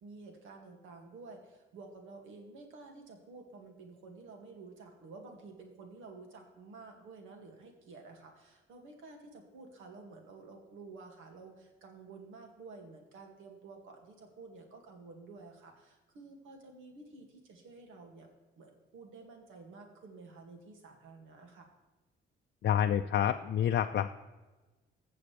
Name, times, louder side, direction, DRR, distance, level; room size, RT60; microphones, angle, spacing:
voice 1, 0.0-18.3 18.6-21.7, right 3 dB, 85° right, 3 dB, 2.1 m, -51 dB
voice 2, 22.6-24.1, left 9 dB, 60° left, 6 dB, 0.5 m, -28 dB
15.5 x 7.1 x 3.3 m, 1.2 s
cardioid pair, 90°, 20 cm